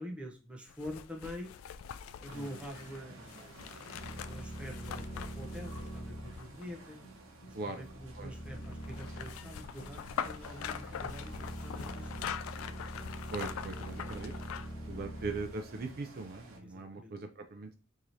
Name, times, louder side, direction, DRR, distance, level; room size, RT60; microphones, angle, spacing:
voice 1, 0.0-1.5 2.2-3.6 4.1-7.0 7.4-12.4 15.1-15.3 16.6-17.1, equal, 5° right, 1 dB, 0.7 m, -46 dB
sound 1, 0.7-6.9 8.5-14.8 15.2-15.3, left 8 dB, 80° left, 0.3 m, -43 dB
sound 2, 2.3-16.6, right 2 dB, 75° right, 0.9 m, -54 dB
sound 3, 3.9-16.4, right 1 dB, 35° left, 0.7 m, -44 dB
voice 2, 13.3-14.3 14.9-17.7, right 3 dB, 50° right, 6 dB, 0.4 m, -40 dB
4.7 x 2.8 x 2.6 m, 0.34 s
head